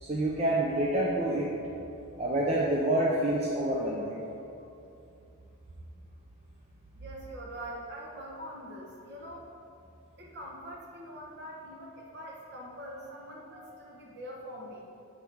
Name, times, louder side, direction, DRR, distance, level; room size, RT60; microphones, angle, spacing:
voice 1, 0.0-1.5 2.2-4.2, right 1 dB, 30° right, -4 dB, 0.6 m, -27 dB
voice 2, 6.9-9.5 10.2-14.9, equal, 50° right, -2 dB, 1.2 m, -43 dB
8.1 x 3.5 x 6.1 m, 2.7 s
head